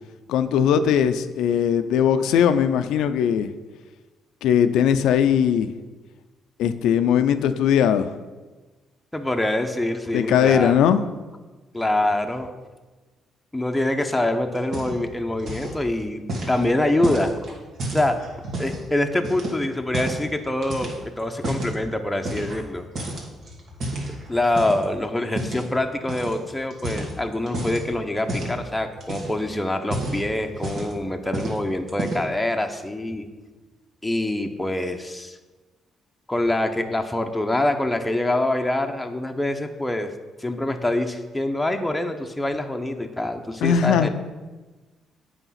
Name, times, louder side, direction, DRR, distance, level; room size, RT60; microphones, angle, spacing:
voice 1, 0.3-3.5 4.4-5.7 6.6-8.2 10.1-11.0 43.6-44.1, left 8 dB, 85° left, 10 dB, 0.4 m, -19 dB
voice 2, 9.1-10.7 11.7-12.5 13.5-17.3 17.9-18.2 18.6-20.9 21.2-22.9 24.3-33.3 34.0-35.4 36.3-40.1 40.4-44.1, left 1 dB, 10° left, 4 dB, 0.7 m, -25 dB
sound 1, 14.5-15.1 15.4-15.8 16.3-18.8 19.2-20.3 20.6-21.8 22.2-22.7 22.9-24.8 25.3-25.7 26.1-26.4 26.7-27.8 28.3-28.6 29.0-29.4 29.8-31.0 31.3-31.6 31.9-32.4, right 1 dB, 60° right, 1.9 m, -31 dB
8.0 x 4.9 x 5.7 m, 1.2 s
cardioid pair, 90°, 0 cm